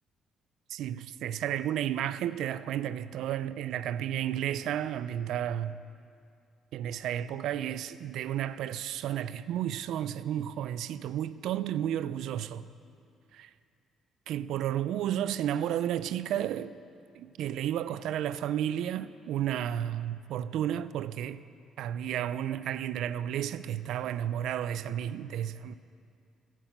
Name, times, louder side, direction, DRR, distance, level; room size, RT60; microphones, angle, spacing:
voice 1, 0.7-5.8 6.7-12.7 13.3-13.5 14.3-16.8 17.1-21.4 21.8-25.7, right 11 dB, 80° right, 0.3 m, -32 dB
10.5 x 7.7 x 8.0 m
cardioid pair, 120°, 0 cm